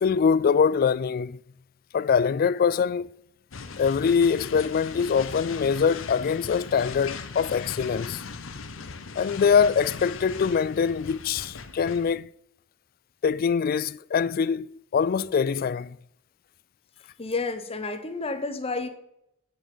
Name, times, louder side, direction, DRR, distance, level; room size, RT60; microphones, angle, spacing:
voice 1, 0.0-1.4 1.9-3.1 3.8-8.2 9.2-12.3 13.2-16.0, left 6 dB, 50° left, 0.3 m, -23 dB
sound 1, 3.5-12.1, left 4 dB, 85° left, 0.8 m, -39 dB
voice 2, 17.2-18.9, left 3 dB, 30° left, 1.0 m, -30 dB
8.8 x 7.6 x 5.0 m
head